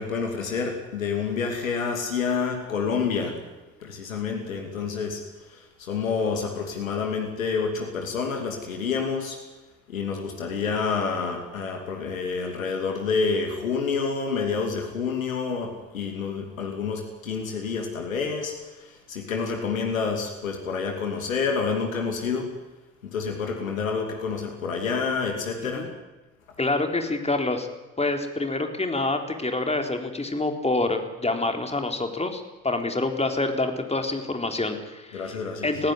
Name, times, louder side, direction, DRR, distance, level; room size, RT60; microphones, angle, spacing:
voice 1, 0.0-3.4 3.8-5.2 5.5-9.4 9.9-22.5 23.0-25.9 35.1-35.7, left 5 dB, 85° left, 3 dB, 2.7 m, -28 dB
voice 2, 26.6-27.7 28.0-35.4 35.6-35.9, left 2 dB, 15° left, 5 dB, 3.9 m, -27 dB
20.5 x 16.0 x 9.9 m, 1.1 s
figure-of-eight pair, 50°, 39 cm